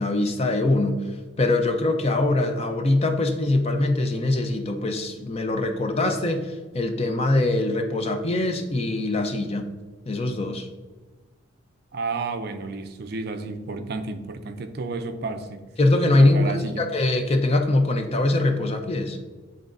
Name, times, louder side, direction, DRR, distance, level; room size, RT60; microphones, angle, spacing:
voice 1, 0.0-9.7 10.1-10.7 15.8-19.2, left 2 dB, 30° left, 5 dB, 0.5 m, -23 dB
voice 2, 11.9-15.6 16.2-16.8, right 3 dB, 50° right, 8 dB, 0.4 m, -31 dB
10.5 x 3.8 x 2.5 m, 1.3 s
head